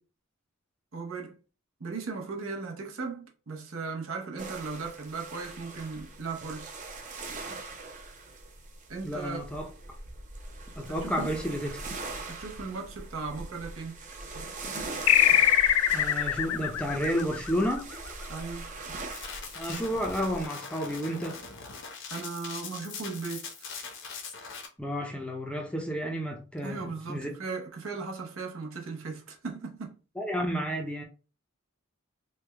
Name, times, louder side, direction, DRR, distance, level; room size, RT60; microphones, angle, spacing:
voice 1, 0.9-1.4 1.8-6.7 8.9-9.5 10.9-11.4 12.3-14.0 18.3-18.7 22.1-23.5 26.6-30.0, right 4 dB, 70° right, 0.8 m, -37 dB
sound 1, 4.4-20.5, right 3 dB, 35° right, 0.6 m, -41 dB
voice 2, 9.0-9.7 10.8-11.8 15.9-17.9 19.6-21.4 24.8-27.3 30.2-31.0, equal, 5° left, 0.5 m, -31 dB
sound 2, 15.1-18.1, left 11 dB, 85° left, 0.3 m, -23 dB
sound 3, 19.1-24.7, left 5 dB, 60° left, 0.8 m, -41 dB
3.3 x 2.2 x 3.3 m
head